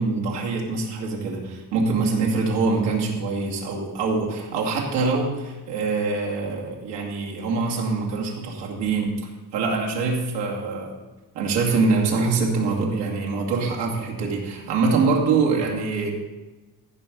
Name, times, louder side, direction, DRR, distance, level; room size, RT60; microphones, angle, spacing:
voice 1, 0.0-9.1 9.5-10.9 11.3-16.2, right 4 dB, 80° right, -2 dB, 2.5 m, -24 dB
15.5 x 5.4 x 5.3 m, 1.2 s
cardioid pair, 150°, 41 cm